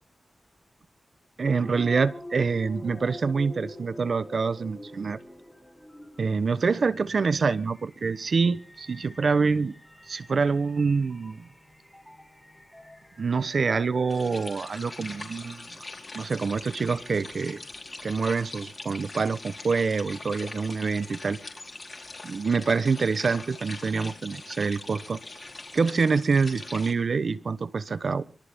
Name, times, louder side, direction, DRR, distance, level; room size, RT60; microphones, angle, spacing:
sound 1, 1.4-16.0, left 1 dB, 5° left, 3.8 m, -46 dB
voice 1, 1.4-5.2 6.2-9.8 10.1-11.5 13.2-15.7 16.1-17.6 18.0-21.4 22.2-25.2 25.7-28.3, right 4 dB, 65° right, 1.1 m, -26 dB
sound 2, 14.1-26.9, left 2 dB, 40° left, 4.3 m, -42 dB
25.0 x 23.0 x 2.2 m
wide cardioid pair, 90°, 0 cm